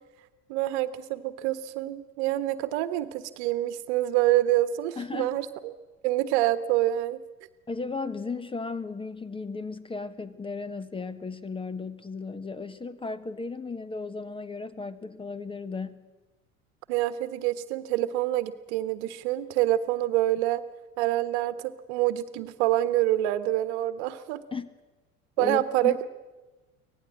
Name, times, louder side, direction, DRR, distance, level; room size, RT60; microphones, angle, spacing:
voice 1, 0.5-5.7 6.0-7.2 16.9-20.6 21.0-24.4 25.4-26.1, right 14 dB, 55° right, 14 dB, 1.4 m, -26 dB
voice 2, 5.0-5.4 7.7-16.1 24.5-24.7 25.4-26.0, left 4 dB, 15° left, 15 dB, 1.2 m, -35 dB
24.5 x 18.5 x 7.7 m, 1.2 s
figure-of-eight pair, 70°, 40 cm